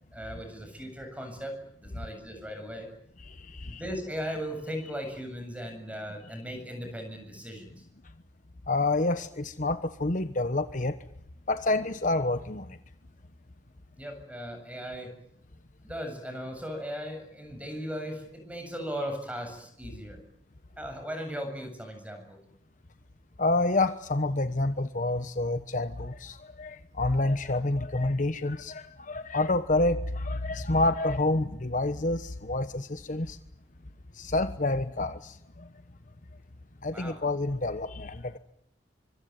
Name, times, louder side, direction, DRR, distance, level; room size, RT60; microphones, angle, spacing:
voice 1, 0.1-2.9 3.6-7.7 14.0-15.1 15.8-20.2 20.8-22.4 36.9-37.2, equal, 10° right, 6 dB, 7.6 m, -37 dB
voice 2, 3.3-3.8 8.7-11.0 11.5-12.8 23.4-33.4 34.1-35.7 36.8-38.4, left 2 dB, 45° left, 10 dB, 1.1 m, -28 dB
25.0 x 24.0 x 9.6 m, 0.71 s
head